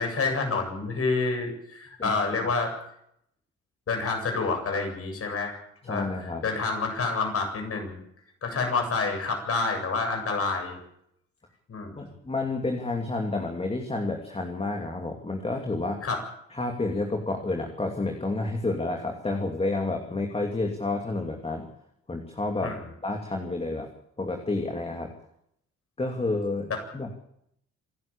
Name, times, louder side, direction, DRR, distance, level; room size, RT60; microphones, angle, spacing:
voice 1, 0.0-2.7 3.9-6.1 6.4-8.0 8.4-10.8 11.7-12.1 16.0-16.2 22.6-22.8 26.7-26.8, left 4 dB, 50° left, 4 dB, 7.8 m, -28 dB
voice 2, 2.0-2.5 5.8-6.4 12.0-16.1 16.5-21.7 22.1-22.8 23.0-23.9 24.2-25.1 26.0-27.1, left 2 dB, 20° left, 2 dB, 2.9 m, -30 dB
27.0 x 11.0 x 8.8 m, 0.75 s
cardioid pair, 90°, 30 cm